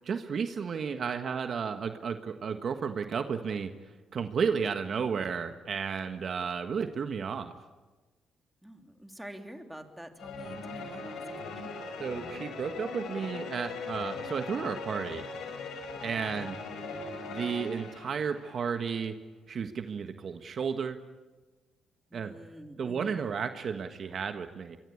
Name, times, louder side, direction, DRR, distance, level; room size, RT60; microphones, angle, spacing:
voice 1, 0.0-3.7 4.1-7.5 12.0-15.2 16.0-16.6 17.3-19.2 19.5-21.0 22.1-22.3 22.8-24.8, right 6 dB, 50° right, 7 dB, 1.5 m, -33 dB
voice 2, 8.6-11.1 11.4-11.8 16.3-16.5 22.1-23.2, right 1 dB, 5° right, 5 dB, 3.1 m, -47 dB
sound 1, 10.2-18.7, left 4 dB, 80° left, 5.9 m, -40 dB
25.0 x 23.5 x 8.7 m, 1.2 s
cardioid pair, 90°, 0 cm